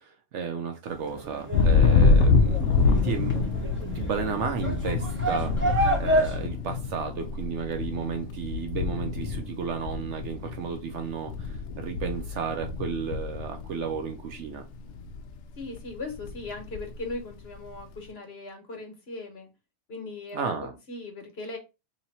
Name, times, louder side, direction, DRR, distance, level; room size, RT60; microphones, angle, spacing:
voice 1, 0.0-2.6 3.0-3.5 3.9-14.6 20.3-20.7, right 6 dB, 65° right, 0.8 m, -33 dB
sound 1, 0.9-6.5, right 1 dB, 10° right, 1.2 m, -29 dB
Thunder, 1.5-14.4 14.7-15.3 15.6-17.1, left 4 dB, 65° left, 0.8 m, -26 dB
voice 2, 15.6-19.5 19.9-21.6, left 3 dB, 50° left, 1.2 m, -39 dB
3.0 x 2.8 x 4.0 m
omnidirectional pair, 1.5 m